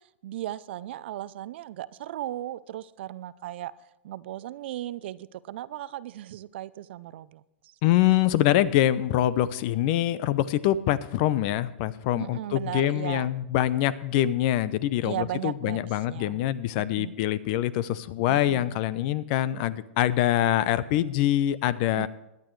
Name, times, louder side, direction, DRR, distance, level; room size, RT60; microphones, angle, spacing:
voice 1, 0.2-3.7 4.0-7.4 12.1-13.3 15.0-15.8 16.1-16.4 16.8-17.1 18.3-18.8 22.0-22.1, right 13 dB, 65° right, 0.5 m, -36 dB
voice 2, 7.8-22.1, left 13 dB, 50° left, 0.7 m, -24 dB
17.5 x 10.5 x 3.2 m
hypercardioid pair, 120°, 6 cm